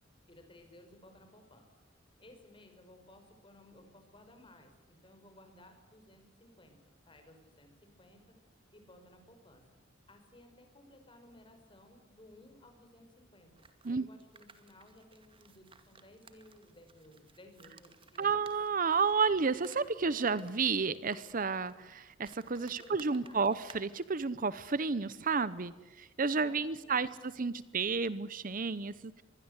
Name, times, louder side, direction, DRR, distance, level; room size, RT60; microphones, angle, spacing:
voice 1, 0.3-1.7 2.2-8.2 8.7-9.6 10.1-18.4 22.6-23.4 26.2-27.0, left 1 dB, 25° left, 6 dB, 5.5 m, -58 dB
sound 1, 13.6-24.1, right 4 dB, 25° right, 2.2 m, -59 dB
voice 2, 18.2-29.2, right 5 dB, 45° right, 16 dB, 0.8 m, -31 dB
25.5 x 21.0 x 8.2 m, 1.1 s
head